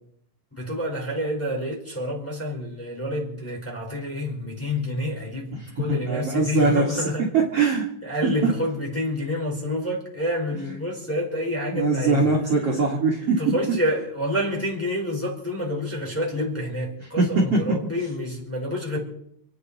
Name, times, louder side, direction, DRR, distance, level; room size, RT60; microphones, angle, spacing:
voice 1, 0.6-7.2 7.5-12.3 13.4-19.0, left 1 dB, 5° left, -3 dB, 4.3 m, -28 dB
voice 2, 5.5-7.0 7.3-7.8 8.2-8.3 10.5-10.8 11.7-13.5 17.0-17.6, right 3 dB, 45° right, -2 dB, 2.7 m, -22 dB
29.0 x 9.9 x 4.2 m, 0.69 s
omnidirectional pair, 4.1 m